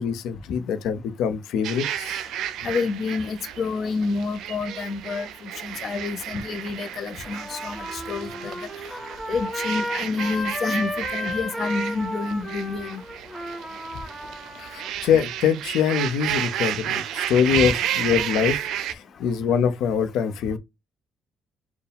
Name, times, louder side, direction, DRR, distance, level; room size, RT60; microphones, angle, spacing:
voice 1, 0.0-2.2 14.6-18.6 18.9-20.6, left 7 dB, 85° left, 0.7 m, -24 dB
sound 1, 1.6-18.9, right 10 dB, 75° right, 0.4 m, -32 dB
voice 2, 2.6-5.3 5.6-8.5 9.3-13.0 17.6-17.7, left 4 dB, 50° left, 0.6 m, -28 dB
Trumpet, 7.2-14.9, equal, 5° right, 1.0 m, -33 dB
4.5 x 2.2 x 3.4 m
cardioid pair, 125°, 0 cm